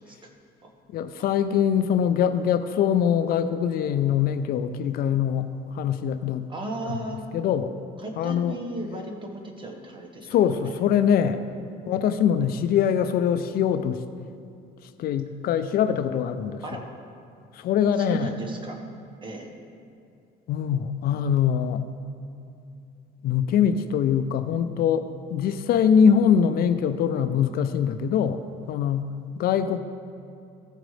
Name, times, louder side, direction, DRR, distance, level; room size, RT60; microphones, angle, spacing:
voice 1, 0.9-6.5 6.9-7.0 7.3-7.7 8.2-8.6 10.3-11.4 11.9-14.0 14.8-16.6 17.5-18.3 20.5-21.8 23.2-28.4 28.7-29.8, left 8 dB, 65° left, 11 dB, 0.4 m, -23 dB
voice 2, 6.5-7.2 8.0-10.3 10.6-11.2 11.6-11.9 16.6-16.8 18.0-18.8 19.2-19.5, right 2 dB, 30° right, 1 dB, 1.3 m, -35 dB
14.5 x 5.1 x 3.2 m, 2.5 s
cardioid pair, 110°, 17 cm